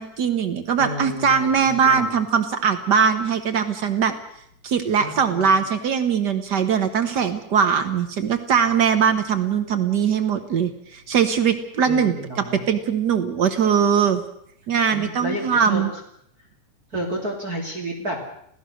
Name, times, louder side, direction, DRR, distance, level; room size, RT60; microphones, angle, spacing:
voice 1, 0.0-4.1 4.6-14.2 14.7-15.9, right 7 dB, 85° right, 9 dB, 0.9 m, -21 dB
voice 2, 0.8-2.1 5.0-5.6 11.9-12.6 14.9-15.8 16.9-18.3, right 1 dB, 30° right, 0 dB, 3.4 m, -31 dB
27.5 x 17.0 x 6.5 m, 0.71 s
omnidirectional pair, 3.7 m